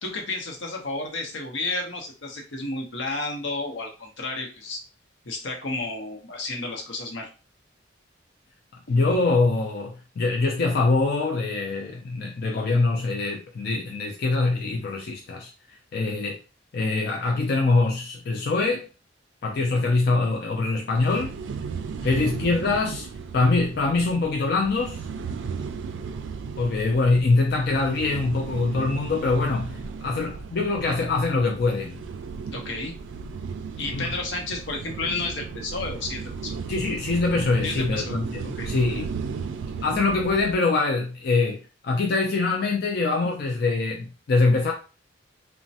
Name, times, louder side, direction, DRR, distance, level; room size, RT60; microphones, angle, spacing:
voice 1, 0.0-4.8 5.2-7.3 22.0-22.3 32.5-32.9 33.8-36.6 37.6-38.7, left 2 dB, 85° left, 1 dB, 0.8 m, -32 dB
voice 2, 8.9-15.5 15.9-16.4 16.7-18.8 19.4-21.3 22.0-23.1 23.3-25.0 26.6-32.0 33.9-34.1 36.7-39.1 39.8-44.7, left 3 dB, 55° left, 1 dB, 0.4 m, -24 dB
sound 1, 20.9-40.5, right 5 dB, 75° right, 0.3 m, -35 dB
3.1 x 2.1 x 2.7 m, 0.33 s
head